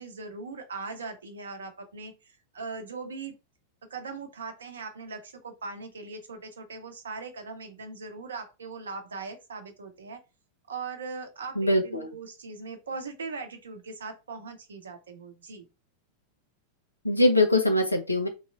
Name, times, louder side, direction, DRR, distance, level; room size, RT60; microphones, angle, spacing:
voice 1, 0.0-3.4 3.9-10.2 10.7-15.7, right 4 dB, 70° right, 7 dB, 0.7 m, -40 dB
voice 2, 11.6-12.1 17.0-18.3, left 1 dB, 85° left, 4 dB, 0.6 m, -22 dB
3.1 x 2.9 x 2.4 m, 0.28 s
figure-of-eight pair, 90°, 0 cm